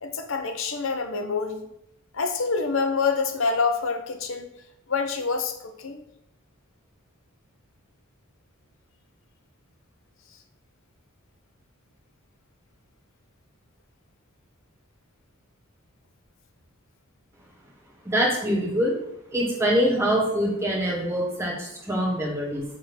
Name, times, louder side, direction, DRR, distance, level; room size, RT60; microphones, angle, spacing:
voice 1, 0.0-1.6 2.1-4.5 4.9-6.0, left 4 dB, 65° left, 6 dB, 0.9 m, -26 dB
voice 2, 18.0-19.0 19.3-22.6, equal, 10° right, -3 dB, 1.9 m, -24 dB
6.4 x 3.8 x 6.1 m, 0.77 s
head